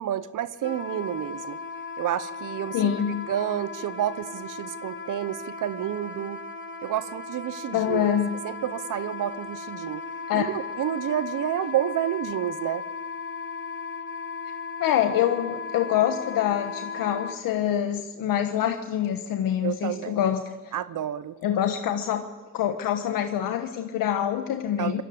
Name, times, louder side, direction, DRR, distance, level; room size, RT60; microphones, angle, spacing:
voice 1, 0.0-1.6 2.0-2.9 3.3-6.4 6.8-8.1 8.4-10.0 10.3-12.8 19.6-20.2 20.7-21.4 24.8-25.0, right 11 dB, 65° right, 15 dB, 0.9 m, -30 dB
Wind instrument woodwind instrument, 0.6-17.4, left 4 dB, 35° left, 3.8 m, -36 dB
voice 2, 2.7-3.3 7.7-8.4 10.3-10.5 14.8-20.7 21.4-22.2 22.5-25.0, left 10 dB, 80° left, 6 dB, 1.4 m, -25 dB
27.0 x 17.5 x 8.6 m, 1.3 s
supercardioid pair, 60°, 33 cm